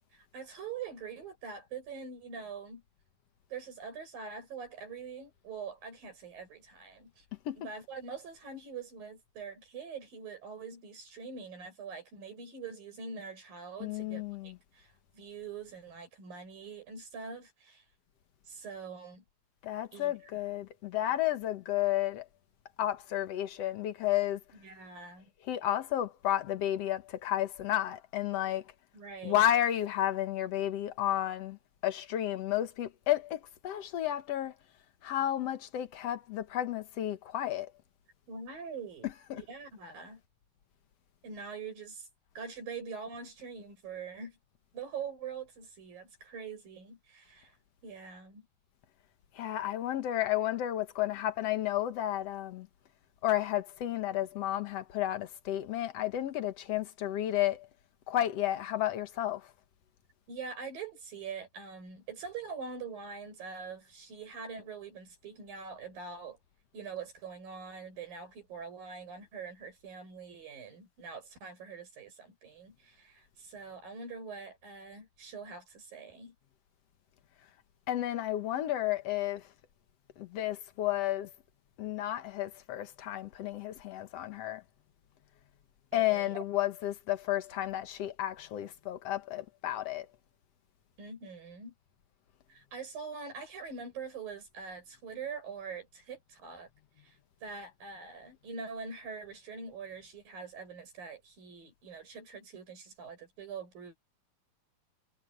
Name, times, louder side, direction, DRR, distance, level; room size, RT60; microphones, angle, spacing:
voice 1, 0.1-2.8 3.5-7.3 7.6-17.8 18.5-19.2 19.9-20.1 24.5-25.3 28.9-29.4 38.3-39.1 39.4-40.2 41.2-42.1 42.4-44.4 44.7-47.6 47.8-48.5 60.3-66.4 66.7-76.3 85.9-86.4 91.0-91.7 92.5-96.7 97.0-104.0, right 5 dB, 65° right, 8.8 m, -44 dB
voice 2, 13.8-14.6 19.6-22.3 22.8-24.4 25.4-28.6 29.2-31.6 31.8-34.5 35.0-37.7 39.0-39.4 49.4-52.7 53.2-57.7 58.1-59.5 77.9-79.4 80.2-81.3 81.8-84.6 85.9-90.1, left 13 dB, 65° left, 1.6 m, -32 dB
omnidirectional pair, 4.3 m